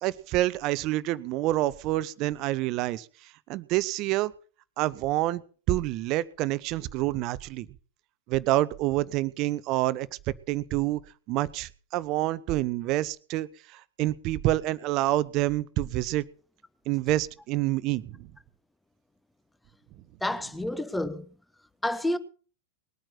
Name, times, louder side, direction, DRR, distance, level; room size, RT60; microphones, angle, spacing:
voice 1, 0.0-4.3 4.8-5.4 5.7-7.7 8.3-10.1 10.5-11.0 11.3-16.2 16.9-18.3, right 16 dB, 40° right, 0.8 m, -27 dB
voice 2, 20.2-21.3 21.8-22.2, left 1 dB, 5° left, 1.1 m, -29 dB
20.5 x 9.0 x 5.9 m
figure-of-eight pair, 90°, 0 cm